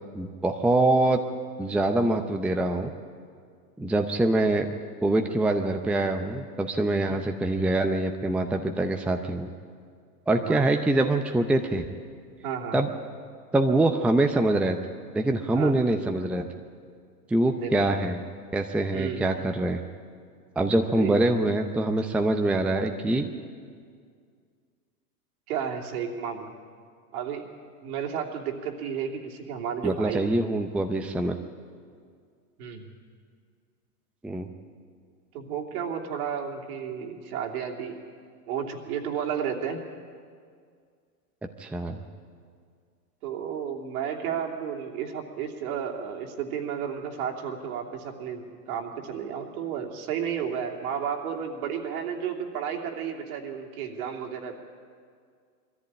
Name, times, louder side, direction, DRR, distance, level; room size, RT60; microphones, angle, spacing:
voice 1, 0.1-1.2 1.6-2.9 3.8-4.7 5.0-9.5 10.3-11.8 12.7-12.9 13.5-14.8 15.1-16.5 17.3-18.2 18.5-19.8 20.6-23.3 29.8-31.4 34.2-34.5 41.6-42.0, right 2 dB, 5° right, 5 dB, 0.6 m, -24 dB
voice 2, 10.4-10.8 12.4-12.8 15.5-15.7 17.6-17.7 18.9-19.3 20.9-21.2 25.5-26.5 27.1-27.4 27.8-30.2 32.6-32.8 35.3-38.0 38.5-39.8 43.2-54.6, right 8 dB, 60° right, 1 dB, 3.0 m, -32 dB
21.5 x 14.0 x 8.7 m, 2.1 s
hypercardioid pair, 115°, 48 cm